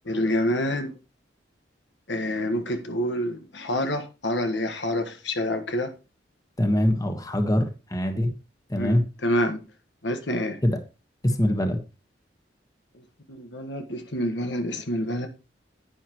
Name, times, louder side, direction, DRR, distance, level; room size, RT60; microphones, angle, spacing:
voice 1, 0.0-0.9 2.1-5.9 8.7-9.6 10.0-10.6 13.3-15.3, left 1 dB, 80° left, 1.5 m, -27 dB
voice 2, 6.6-8.3 8.7-9.0 10.6-10.8 11.2-11.8, left 1 dB, 20° left, 1.4 m, -23 dB
10.5 x 9.2 x 3.1 m
head